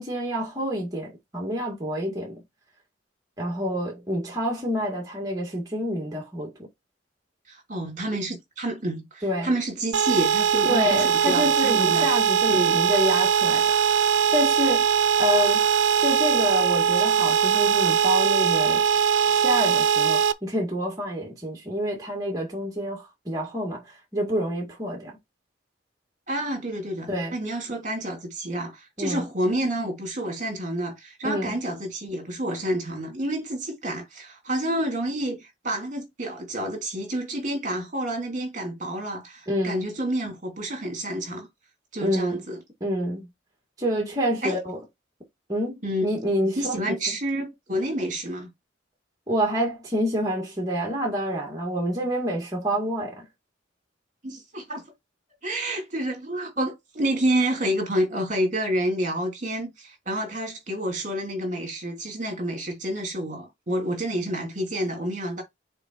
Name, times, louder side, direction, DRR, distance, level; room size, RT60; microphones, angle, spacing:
voice 1, 0.0-2.4 3.4-6.7 9.2-9.5 10.6-14.8 15.2-15.6 16.0-18.8 19.3-23.8 24.1-25.1 27.1-27.3 29.0-29.2 31.2-31.5 39.5-39.7 42.0-42.4 42.8-43.3 43.8-44.8 45.5-47.1 49.3-53.2, equal, 20° right, 2.3 m, -27 dB
voice 2, 7.5-12.1 12.5-12.8 26.3-41.5 41.9-42.6 44.4-44.6 45.8-46.1 46.6-48.5 54.2-54.8 55.4-65.4, right 1 dB, 40° right, 2.9 m, -29 dB
sound 1, 9.9-20.3, right 7 dB, 85° right, 0.6 m, -21 dB
6.8 x 4.0 x 4.6 m
head